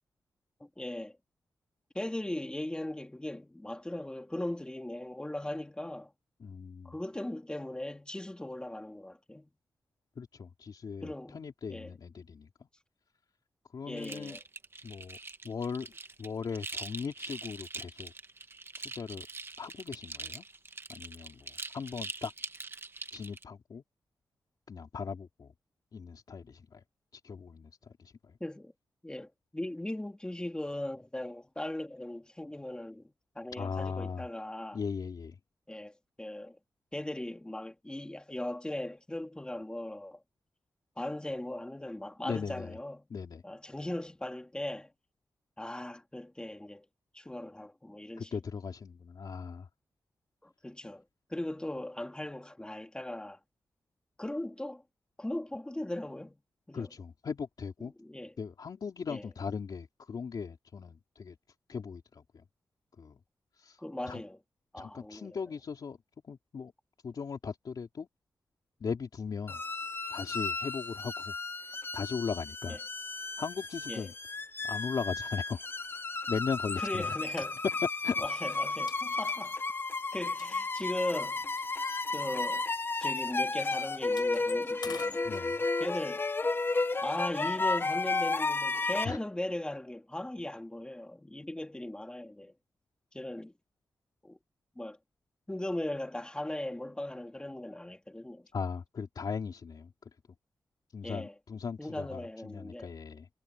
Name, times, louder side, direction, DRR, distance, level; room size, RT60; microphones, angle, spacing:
voice 1, 0.6-1.2 1.9-6.1 6.8-9.5 11.0-11.9 13.8-14.4 28.4-28.7 29.0-34.8 35.7-36.6 36.9-40.2 41.0-43.1 43.4-44.9 45.6-46.8 47.1-48.4 50.4-51.0 51.3-53.4 54.2-54.8 55.2-56.4 56.7-56.9 58.0-58.3 59.1-59.3 63.8-64.4 64.7-65.4 72.7-72.8 73.9-74.1 76.8-77.6 78.2-79.6 80.1-81.4 82.1-82.7 83.0-85.3 85.8-86.2 87.0-92.5 93.1-93.5 94.2-94.4 94.8-95.0 95.5-98.5 101.0-101.3 101.8-102.9, left 1 dB, 10° left, 2.9 m, -38 dB
voice 2, 6.4-6.9 10.2-12.5 13.7-14.4 14.8-15.2 15.4-15.9 16.2-18.1 18.8-19.3 19.6-20.4 20.9-22.3 23.1-23.8 24.7-25.5 25.9-26.8 27.1-28.4 33.5-34.3 34.7-35.4 42.2-42.8 43.1-43.4 48.2-49.7 56.7-57.9 58.4-61.4 61.7-62.4 63.0-63.2 63.6-63.8 64.1-64.2 64.8-66.0 66.2-66.7 67.0-68.1 68.8-69.6 70.1-72.8 73.2-74.1 74.6-75.7 76.3-77.1 78.0-78.2 85.2-85.6 89.0-89.2 98.5-99.9 100.9-103.3, left 5 dB, 65° left, 3.2 m, -38 dB
sound 1, 14.0-23.4, right 3 dB, 30° right, 1.2 m, -43 dB
sound 2, 69.5-89.0, left 3 dB, 30° left, 0.9 m, -33 dB
sound 3, 76.6-76.8 77.3-78.0 78.4-78.6 78.9-80.9 81.3-82.7 83.0-83.2 83.5-85.2, left 7 dB, 90° left, 3.9 m, -47 dB
wide cardioid pair, 95°, 7 cm